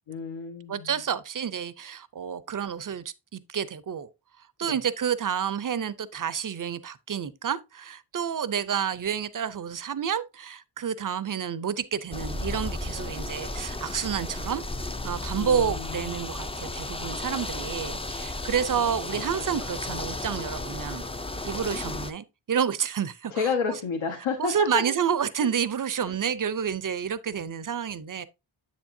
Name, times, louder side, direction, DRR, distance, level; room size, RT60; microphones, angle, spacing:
voice 1, 0.1-0.9 4.6-4.8 15.3-16.1 18.3-19.6 23.3-24.8 26.0-26.2, left 5 dB, 75° left, 1.4 m, -31 dB
voice 2, 0.7-3.0 3.3-4.1 4.6-14.6 15.0-21.0 21.4-23.5 24.4-28.2, right 8 dB, 45° right, 0.5 m, -29 dB
sound 1, 12.1-22.1, left 2 dB, 15° left, 0.4 m, -34 dB
8.0 x 7.2 x 2.6 m
wide cardioid pair, 145°, 48 cm